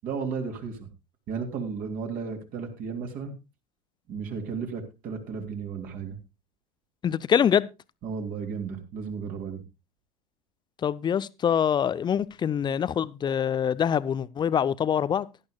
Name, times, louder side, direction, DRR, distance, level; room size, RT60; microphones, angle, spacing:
voice 1, 0.0-0.9 1.3-3.3 4.1-6.2 8.0-9.6, right 5 dB, 40° right, 2.9 m, -34 dB
voice 2, 7.0-7.7 10.8-15.3, left 8 dB, 20° left, 0.6 m, -25 dB
17.5 x 11.5 x 2.3 m
figure-of-eight pair, 80°, 21 cm